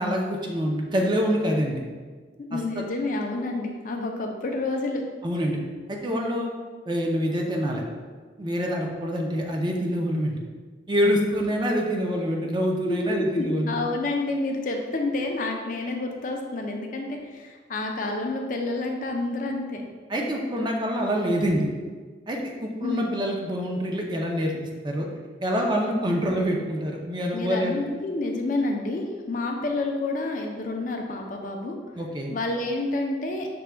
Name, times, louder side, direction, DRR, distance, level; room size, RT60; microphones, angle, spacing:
voice 1, 0.0-1.8 2.5-2.6 5.2-5.6 5.9-6.5 6.9-7.8 8.4-10.4 10.9-13.8 20.1-21.7 22.3-24.5 24.8-25.1 25.4-27.8 31.9-32.3, equal, 25° right, 0 dB, 0.5 m, -26 dB
voice 2, 2.4-5.0 12.8-19.9 22.8-23.0 27.3-31.8 32.3-33.5, left 2 dB, 45° left, 2 dB, 0.4 m, -29 dB
5.9 x 2.2 x 3.3 m, 1.5 s
head